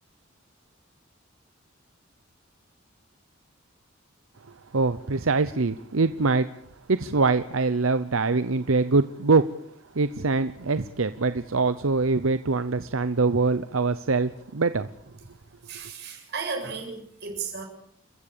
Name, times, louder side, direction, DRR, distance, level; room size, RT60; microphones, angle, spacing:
voice 1, 4.7-6.5 6.9-9.4 9.9-14.9, right 3 dB, 85° right, 0.8 m, -23 dB
voice 2, 15.6-17.6, right 5 dB, 55° right, 7.1 m, -34 dB
29.5 x 15.0 x 6.9 m
head